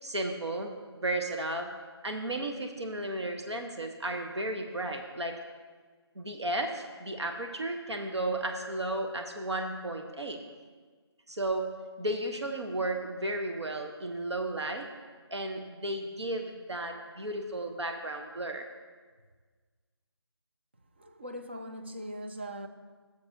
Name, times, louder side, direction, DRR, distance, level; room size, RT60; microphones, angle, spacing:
voice 1, 0.0-1.7 2.0-5.3 6.2-10.4 11.3-11.7 12.0-14.9 15.3-18.7, right 1 dB, 80° right, 0.9 m, -34 dB
voice 2, 21.0-22.7, equal, 25° right, 0.3 m, -40 dB
15.0 x 6.9 x 2.7 m
figure-of-eight pair, 160°, 14 cm